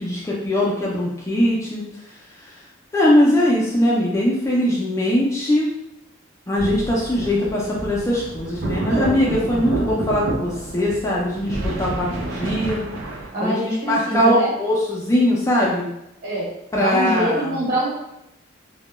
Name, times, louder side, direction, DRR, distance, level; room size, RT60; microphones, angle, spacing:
voice 1, 0.0-1.8 2.9-5.7 6.5-12.8 13.4-13.6 13.9-15.9 16.7-17.6, left 1 dB, 15° left, -4 dB, 0.4 m, -20 dB
sound 1, 6.6-13.3, right 2 dB, 75° right, 0.5 m, -29 dB
voice 2, 13.3-14.5 16.2-17.9, right 1 dB, 50° right, -7 dB, 1.2 m, -24 dB
2.1 x 2.1 x 2.9 m, 0.88 s
head